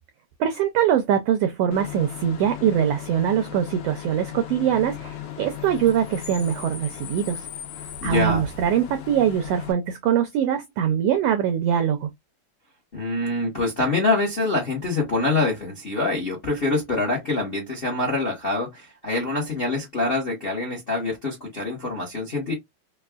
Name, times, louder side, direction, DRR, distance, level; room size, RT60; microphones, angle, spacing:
voice 1, 0.4-7.5 8.0-12.1, right 9 dB, 85° right, 1.4 m, -23 dB
Bus / Idling / Screech, 1.7-9.7, left 9 dB, 75° left, 2.2 m, -37 dB
voice 2, 8.0-8.5 12.9-22.5, left 2 dB, 55° left, 0.6 m, -25 dB
5.1 x 2.4 x 2.3 m
omnidirectional pair, 3.4 m